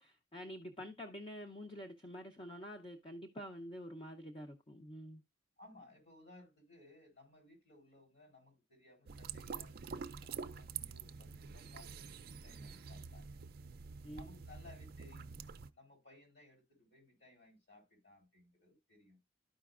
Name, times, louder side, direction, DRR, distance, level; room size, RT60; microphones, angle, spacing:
voice 1, 0.0-5.2 14.0-14.3, equal, 30° left, 0.7 m, -48 dB
voice 2, 5.6-9.7 10.1-13.4 14.2-15.3 15.7-19.2, left 2 dB, 65° left, 4.0 m, -61 dB
sound 1, 9.1-15.7, right 6 dB, 55° right, 0.5 m, -47 dB
12.5 x 5.1 x 2.4 m
head